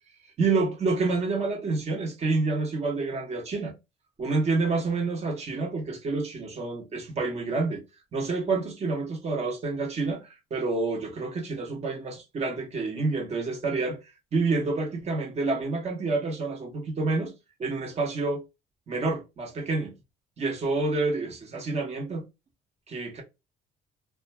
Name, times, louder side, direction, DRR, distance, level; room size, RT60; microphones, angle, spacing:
voice 1, 0.4-3.7 4.2-7.8 8.1-14.0 14.3-17.3 17.6-18.4 18.9-19.9 20.4-22.2 22.9-23.2, right 3 dB, 40° right, 1.0 m, -28 dB
2.3 x 2.2 x 2.9 m
cardioid pair, 110°, 17 cm